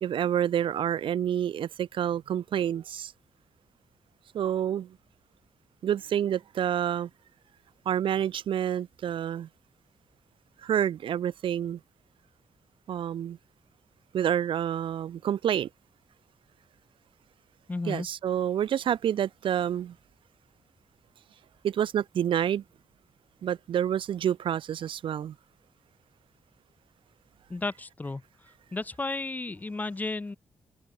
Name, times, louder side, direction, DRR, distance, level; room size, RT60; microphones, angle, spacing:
voice 1, 0.0-3.1 4.3-5.0 5.8-7.1 7.8-9.5 10.6-11.8 12.9-13.4 14.1-15.7 17.8-19.9 21.6-22.6 23.4-25.3, right 10 dB, 75° right, 1.2 m, -28 dB
voice 2, 17.7-18.1 27.5-28.2 28.7-30.4, left 3 dB, 20° left, 0.9 m, -33 dB
cardioid pair, 120°, 9 cm